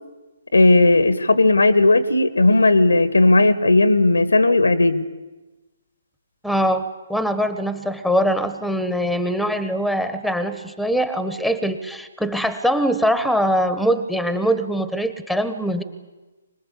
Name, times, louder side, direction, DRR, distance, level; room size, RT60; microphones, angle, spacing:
voice 1, 0.5-5.0, left 2 dB, 85° left, 13 dB, 1.6 m, -15 dB
voice 2, 6.4-15.8, equal, ahead, 11 dB, 1.4 m, -22 dB
25.5 x 20.0 x 8.4 m, 1.2 s
figure-of-eight pair, 135°, 0 cm